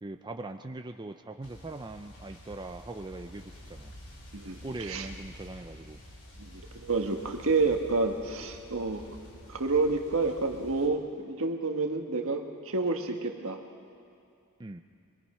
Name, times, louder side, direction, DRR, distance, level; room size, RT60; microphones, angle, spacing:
voice 1, 0.0-3.9 4.6-6.0 14.6-14.8, right 2 dB, 20° right, 5 dB, 0.5 m, -41 dB
sound 1, 1.4-10.9, equal, 75° left, 5.2 m, -49 dB
voice 2, 4.3-5.1 6.4-9.0 9.5-13.6, right 3 dB, 65° right, 4 dB, 1.6 m, -29 dB
24.0 x 22.5 x 5.6 m, 2.4 s
head